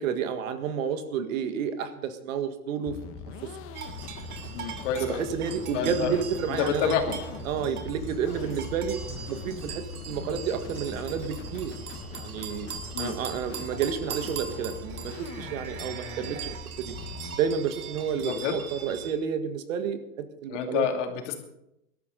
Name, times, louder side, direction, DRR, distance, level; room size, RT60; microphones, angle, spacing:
voice 1, 0.0-3.0 5.0-7.2 7.5-9.0 9.3-11.7 12.1-12.7 13.0-16.9 17.4-20.9, right 7 dB, 65° right, 9 dB, 1.8 m, -30 dB
sound 1, 2.9-17.3, left 5 dB, 30° left, 1.3 m, -41 dB
sound 2, 3.7-19.1, right 7 dB, 80° right, 2.8 m, -40 dB
voice 2, 4.5-5.2 5.7-6.1 6.6-7.2 12.9-13.2 18.2-18.6 20.5-21.3, left 7 dB, 55° left, 3 dB, 2.8 m, -28 dB
20.0 x 12.5 x 4.0 m, 0.81 s
hypercardioid pair, 140°, 44 cm